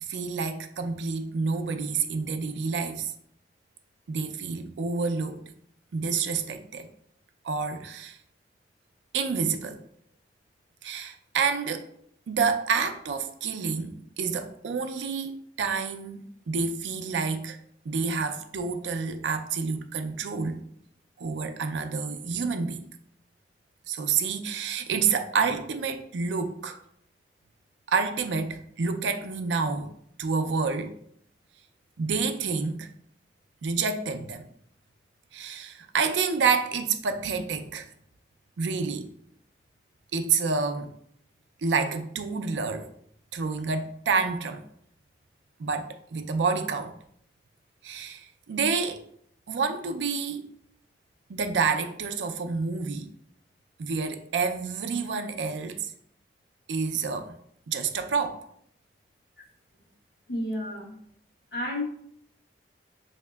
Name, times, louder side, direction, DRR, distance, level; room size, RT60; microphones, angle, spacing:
voice 1, 0.0-3.1 4.1-5.4 5.9-6.9 7.4-8.2 9.1-9.8 10.8-11.9 12.3-17.6 17.9-20.6 21.2-22.8 23.9-26.8 27.9-29.9 30.2-30.9 32.0-32.9 33.6-34.4 35.3-37.9 38.6-39.1 40.1-40.9 41.6-42.9 43.3-44.6 45.6-46.9 47.8-49.0 49.5-50.5 51.3-53.1 53.8-55.9 56.7-57.4 57.7-58.4, right 5 dB, 85° right, 0.4 m, -28 dB
voice 2, 60.3-60.9 61.5-61.8, left 1 dB, 75° left, 1.1 m, -31 dB
5.1 x 2.8 x 2.3 m
head